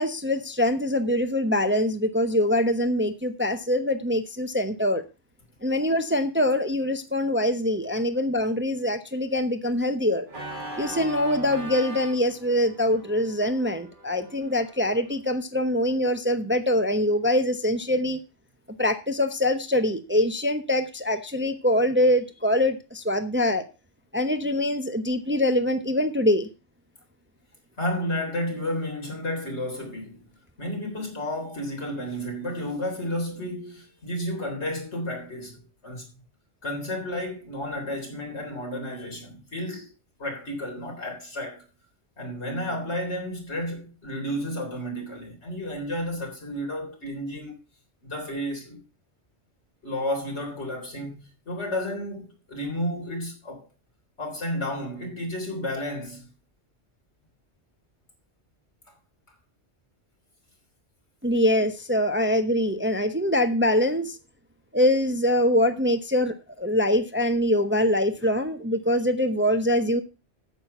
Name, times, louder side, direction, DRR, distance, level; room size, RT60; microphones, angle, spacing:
voice 1, 0.0-5.0 5.6-10.3 10.8-18.2 18.8-23.6 24.1-26.5 61.2-64.2 64.7-70.0, left 1 dB, 10° right, 0.8 m, -24 dB
Organ, 10.3-15.1, right 1 dB, 45° right, 2.1 m, -40 dB
voice 2, 27.8-30.3 30.6-36.1 36.6-39.9 40.2-41.6 42.2-47.6 48.0-48.8 49.8-53.7 54.2-56.3 62.2-62.3, left 1 dB, 80° left, 4.0 m, -32 dB
9.2 x 7.6 x 5.5 m
omnidirectional pair, 1.2 m